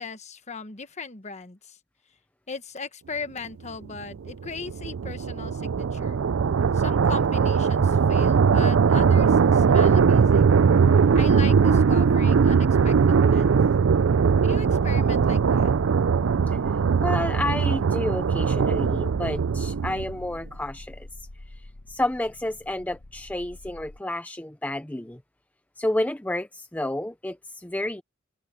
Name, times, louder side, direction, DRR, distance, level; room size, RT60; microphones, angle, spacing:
voice 1, 0.0-1.8 2.5-6.2 6.7-10.6 11.1-13.6 14.4-15.7, left 4 dB, 35° left, 1.2 m, -38 dB
sound 1, 4.0-20.2, right 6 dB, 90° right, 0.4 m, -20 dB
sound 2, 7.8-24.0, left 1 dB, 65° left, 1.2 m, -43 dB
voice 2, 17.0-21.1 21.9-25.2 25.8-28.0, left 1 dB, 10° left, 0.6 m, -30 dB
head